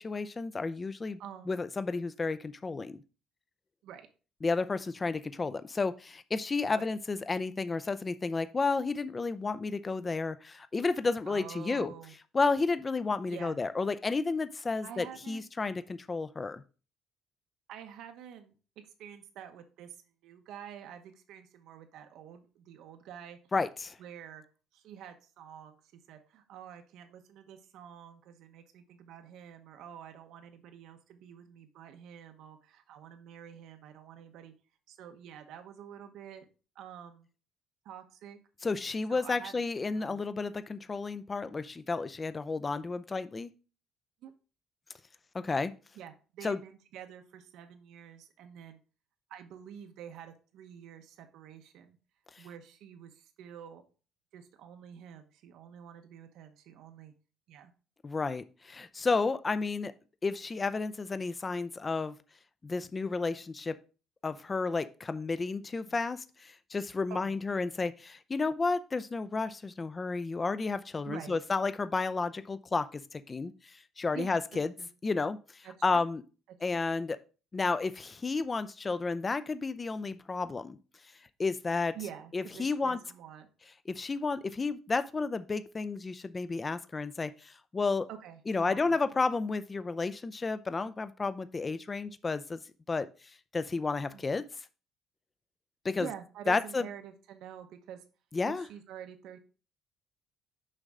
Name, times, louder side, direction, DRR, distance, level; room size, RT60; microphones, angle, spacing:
voice 1, 0.0-1.2 1.5-3.0 4.4-11.9 12.3-16.6 23.5-24.0 38.6-43.5 45.3-45.7 46.4-46.6 58.0-59.9 60.2-62.2 62.6-63.8 64.2-74.7 75.0-76.2 76.6-77.2 77.5-80.8 81.4-82.0 82.3-83.0 83.9-88.1 88.5-92.6 92.9-93.1 93.5-94.5 95.8-96.1 96.5-96.9 98.3-98.7, left 4 dB, 20° left, 13 dB, 0.5 m, -32 dB
voice 2, 1.2-1.5 3.8-4.1 6.7-6.9 11.3-12.1 13.3-13.6 14.8-15.5 17.7-20.0 20.2-23.4 24.0-24.4 24.7-25.8 26.1-34.5 34.9-36.5 36.7-37.3 37.8-38.4 39.1-39.6 39.9-40.2 44.2-44.3 46.0-48.8 49.3-52.0 52.4-53.8 54.3-57.1 57.5-57.7 62.7-62.9 65.9-66.0 67.1-67.4 71.1-71.4 74.1-74.3 74.8-74.9 75.6-75.7 80.1-80.2 81.9-83.5 88.1-89.0 94.1-94.3 96.0-98.0 98.5-99.4, right 9 dB, 70° right, 6 dB, 1.0 m, -48 dB
6.6 x 5.3 x 3.6 m, 0.35 s
cardioid pair, 135°, 0 cm